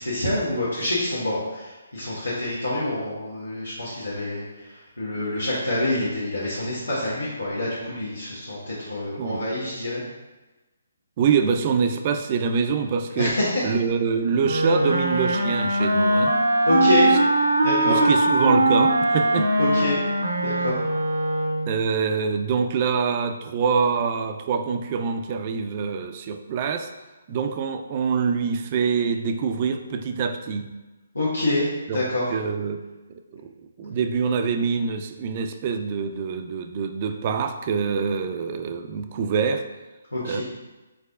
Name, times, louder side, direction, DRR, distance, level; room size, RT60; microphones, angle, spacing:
voice 1, 0.0-10.0 13.2-13.6 16.6-17.1 17.6-18.0 19.6-20.0 20.4-20.8 31.1-32.3 40.1-40.4, left 1 dB, 90° left, -10 dB, 1.3 m, -26 dB
voice 2, 9.2-9.5 11.2-13.3 13.6-16.3 17.9-19.7 21.7-26.9 27.3-30.7 31.9-32.0 32.3-32.8 33.1-33.5 33.8-39.6 40.2-40.4, right 6 dB, 35° right, 7 dB, 0.3 m, -25 dB
Wind instrument woodwind instrument, 14.4-21.8, right 1 dB, 85° right, 0.6 m, -21 dB
4.8 x 4.1 x 2.3 m, 1.1 s
figure-of-eight pair, 140°, 0 cm